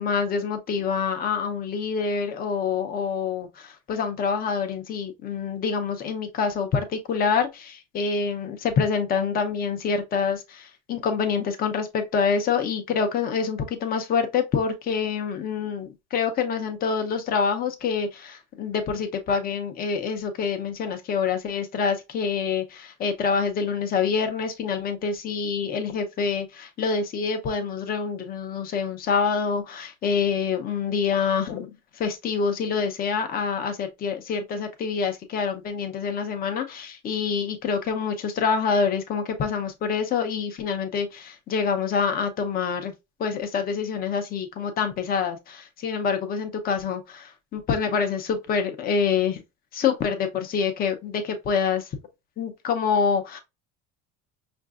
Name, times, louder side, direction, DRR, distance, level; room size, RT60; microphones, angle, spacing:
voice 1, 0.0-31.7 32.0-42.9 43.2-49.4 49.7-51.9 52.4-53.4, left 6 dB, 30° left, 0.6 m, -26 dB
5.5 x 2.5 x 2.3 m
cardioid pair, 165°, 32 cm